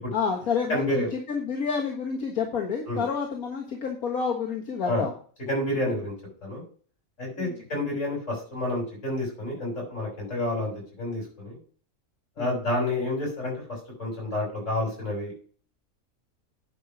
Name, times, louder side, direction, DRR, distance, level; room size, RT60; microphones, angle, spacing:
voice 1, 0.1-5.1 5.8-6.0 7.4-7.7 12.4-12.6, left 5 dB, 85° left, 1 dB, 2.0 m, -29 dB
voice 2, 0.7-1.1 2.9-3.0 4.8-5.0 5.5-6.1 6.4-6.6 7.2-11.6 12.4-13.5 14.0-15.3, left 1 dB, 60° left, -2 dB, 7.0 m, -29 dB
10.0 x 5.5 x 6.2 m, 0.42 s
omnidirectional pair, 1.5 m